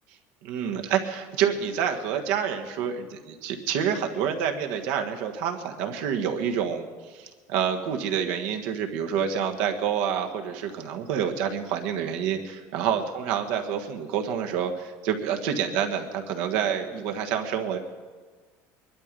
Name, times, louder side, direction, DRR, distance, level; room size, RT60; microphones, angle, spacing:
voice 1, 0.4-17.8, right 8 dB, 80° right, 5 dB, 1.5 m, -28 dB
22.5 x 12.0 x 5.3 m, 1.5 s
cardioid pair, 170°, 6 cm